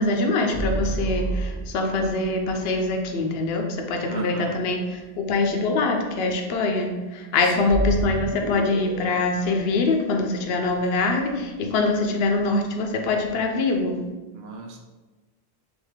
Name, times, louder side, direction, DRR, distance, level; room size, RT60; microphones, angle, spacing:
voice 1, 0.0-14.0, left 3 dB, 75° left, 3 dB, 0.8 m, -24 dB
sound 1, 0.5-2.1 7.7-10.7, right 2 dB, 45° right, 0.4 m, -29 dB
voice 2, 4.1-4.6 7.4-7.8 14.3-14.8, right 4 dB, 80° right, 2 dB, 0.9 m, -34 dB
3.5 x 3.5 x 3.5 m, 1.2 s
omnidirectional pair, 1.1 m